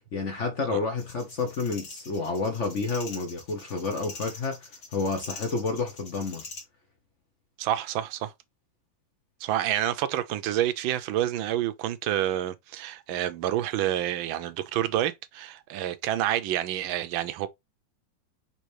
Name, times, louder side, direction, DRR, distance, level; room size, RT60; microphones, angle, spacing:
voice 1, 0.0-6.4, left 4 dB, 50° left, 1.0 m, -30 dB
sound 1, 1.0-6.6, left 4 dB, 65° left, 2.6 m, -44 dB
voice 2, 7.6-8.3 9.4-17.5, right 12 dB, 85° right, 1.4 m, -28 dB
5.4 x 3.0 x 3.1 m
omnidirectional pair, 2.2 m